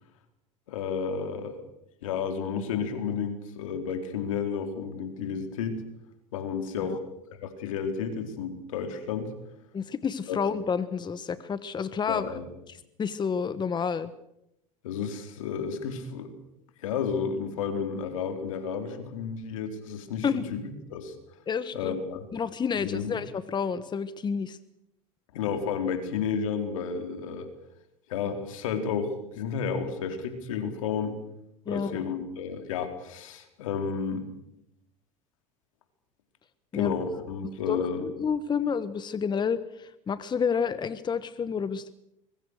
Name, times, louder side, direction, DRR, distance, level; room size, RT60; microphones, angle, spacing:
voice 1, 0.7-1.6 2.0-5.8 6.3-7.0 7.4-9.3 10.3-10.4 12.1-12.5 14.8-16.3 16.8-21.1 21.7-22.3 22.7-23.1 25.3-27.5 28.1-31.2 31.7-34.3 36.7-38.1, left 6 dB, 80° left, 7 dB, 4.1 m, -32 dB
voice 2, 9.7-12.3 12.7-14.1 20.2-20.4 21.5-21.9 22.3-24.6 31.7-32.1 36.7-36.9 37.7-41.9, left 6 dB, 25° left, 14 dB, 1.3 m, -30 dB
25.0 x 23.0 x 6.6 m, 0.83 s
hypercardioid pair, 90°, 17 cm